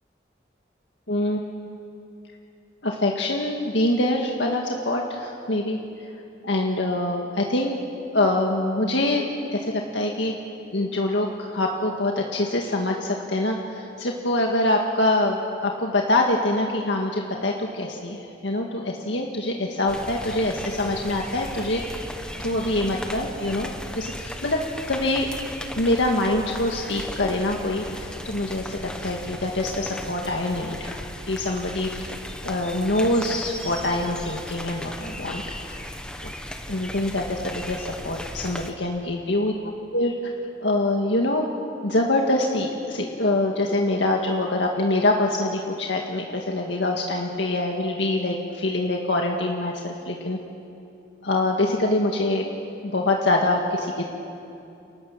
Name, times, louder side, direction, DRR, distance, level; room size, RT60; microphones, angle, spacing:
voice 1, 1.1-1.4 2.8-5.8 6.4-7.8 8.1-10.4 10.7-21.8 22.4-24.6 24.9-25.3 25.8-32.1 32.4-35.8 36.2-36.3 36.7-39.5 39.9-40.3 40.6-41.5 41.8-50.4 51.2-52.5 52.8-54.0, left 1 dB, 85° left, 0 dB, 1.9 m, -25 dB
sound 1, 19.9-38.7, equal, 5° left, 1.3 m, -36 dB
29.5 x 25.0 x 7.4 m, 2.7 s
head